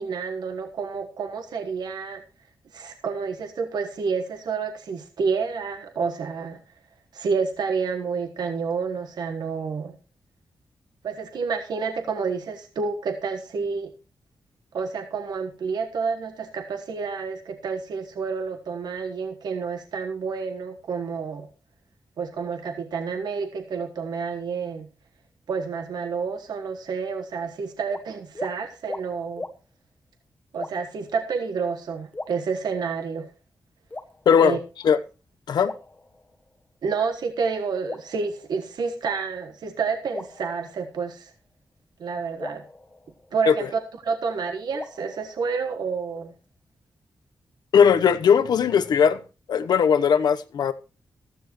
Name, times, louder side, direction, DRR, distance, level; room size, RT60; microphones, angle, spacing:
voice 1, 0.0-2.2 2.7-6.6 7.1-9.9 11.0-13.9 14.7-21.5 22.2-24.9 25.5-29.4 30.5-33.3 34.4-34.6 36.8-41.3 42.0-42.7 43.3-46.3, right 5 dB, 80° right, 1.3 m, -29 dB
sound 1, 27.9-28.0 28.3-28.5 28.9-29.1 29.4-29.6 30.5-31.0 32.1-33.0 33.9-34.6 35.6-36.6 37.9-39.0 40.1-41.3 42.4-43.8 44.7-45.9, left 2 dB, 25° left, 1.2 m, -39 dB
voice 2, 34.3-34.6 34.8-35.0 35.5-35.7 43.5-43.6 47.7-49.2 49.5-50.7, left 7 dB, 85° left, 0.9 m, -18 dB
14.5 x 13.0 x 3.1 m
cardioid pair, 80°, 7 cm